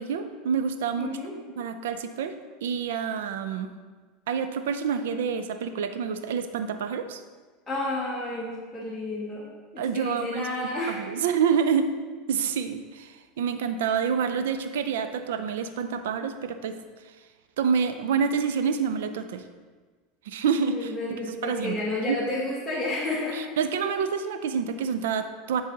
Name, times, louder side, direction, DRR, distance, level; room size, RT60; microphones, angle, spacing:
voice 1, 0.0-1.1 1.6-2.3 2.6-3.7 4.3-7.2 9.8-10.5 10.9-11.9 12.3-16.8 17.6-19.4 20.3-20.9 21.3-21.8 22.1-22.2 23.3-25.6, right 6 dB, 85° right, 9 dB, 0.5 m, -27 dB
voice 2, 1.0-1.3 7.7-9.5 9.7-11.0 20.7-23.4, left 2 dB, 10° left, -7 dB, 1.4 m, -31 dB
10.5 x 4.1 x 3.9 m, 1.4 s
supercardioid pair, 115°, 0 cm